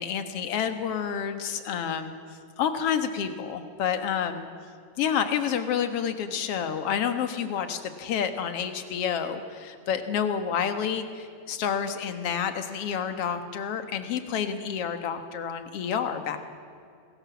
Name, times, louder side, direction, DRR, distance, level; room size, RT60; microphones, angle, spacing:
voice 1, 0.0-2.2 2.6-4.5 5.0-16.4, left 8 dB, 55° left, 8 dB, 2.3 m, -29 dB
27.0 x 20.5 x 7.2 m, 2.4 s
omnidirectional pair, 3.3 m